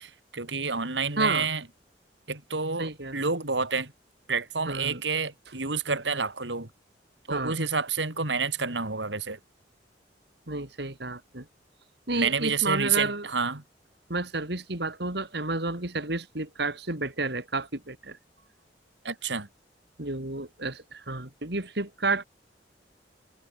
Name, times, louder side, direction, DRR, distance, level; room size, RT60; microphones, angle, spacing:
voice 1, 0.0-1.6 2.3-3.9 4.3-6.7 7.3-9.4 12.1-13.6 19.0-19.5, right 5 dB, 80° right, 3.6 m, -29 dB
voice 2, 1.2-1.5 2.8-3.3 4.7-5.0 7.3-7.6 10.5-11.5 12.1-13.3 14.1-18.2 20.0-22.2, right 3 dB, 65° right, 3.9 m, -31 dB
head